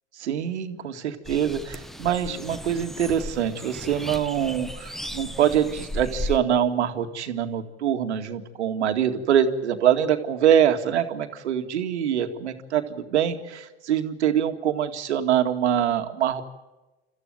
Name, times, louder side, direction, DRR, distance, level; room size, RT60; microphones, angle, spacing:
voice 1, 0.2-16.4, right 9 dB, 80° right, 7 dB, 2.1 m, -24 dB
sound 1, 1.2-6.4, left 1 dB, ahead, 1.0 m, -35 dB
29.0 x 14.5 x 9.1 m, 1.1 s
hypercardioid pair, 105°, 33 cm